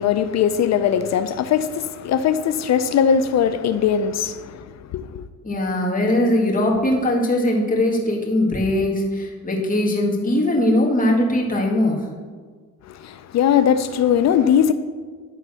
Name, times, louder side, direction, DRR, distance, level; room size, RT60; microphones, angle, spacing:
voice 1, 0.0-4.7 4.9-5.2 12.9-14.7, left 8 dB, 60° left, 0.5 m, -20 dB
voice 2, 5.4-12.0, left 1 dB, 25° left, 2.0 m, -20 dB
10.5 x 3.9 x 6.1 m
cardioid pair, 90°, 30 cm